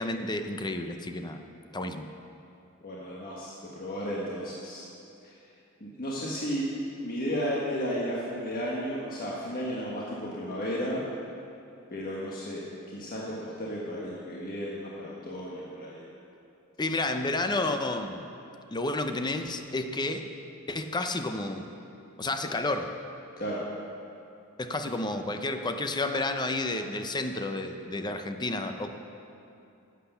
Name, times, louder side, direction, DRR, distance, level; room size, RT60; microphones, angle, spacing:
voice 1, 0.0-1.4 1.7-2.1 16.8-18.3 18.7-20.3 20.7-21.7 22.2-22.9 24.6-28.9, left 2 dB, 20° left, 7 dB, 0.6 m, -31 dB
voice 2, 2.8-4.9 5.2-5.3 5.8-6.6 7.0-11.0 11.9-16.0 23.4-23.6, equal, 45° left, -5 dB, 1.4 m, -34 dB
11.5 x 8.3 x 6.9 m, 2.7 s
head